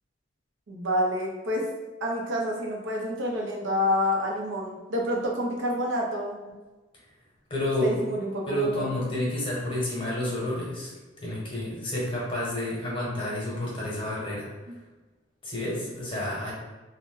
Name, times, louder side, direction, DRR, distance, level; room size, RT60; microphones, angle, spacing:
voice 1, 0.7-1.6 2.0-6.4 7.8-8.9 14.7-14.8, left 1 dB, 85° right, -1 dB, 0.6 m, -28 dB
voice 2, 7.5-7.9 8.5-10.9 11.2-14.5 15.4-16.5, left 1 dB, 30° left, -5 dB, 0.9 m, -30 dB
2.5 x 2.1 x 3.6 m, 1.2 s
head